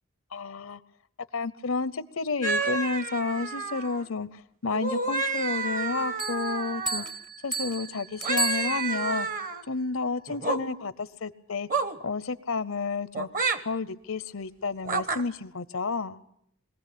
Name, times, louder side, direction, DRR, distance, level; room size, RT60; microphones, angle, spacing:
voice 1, 0.3-0.8 1.3-7.0 7.4-9.3 9.7-11.7 12.0-13.3 13.6-16.2, left 4 dB, 65° left, 17 dB, 0.7 m, -31 dB
sound 1, 2.4-4.0 4.7-7.1 8.2-9.6 10.3-10.6 11.7-12.0 13.1-13.6 14.8-15.2, right 4 dB, 40° right, 1.2 m, -30 dB
sound 2, 6.2-9.2, right 3 dB, 20° right, 0.8 m, -33 dB
22.0 x 16.5 x 8.5 m, 0.74 s
head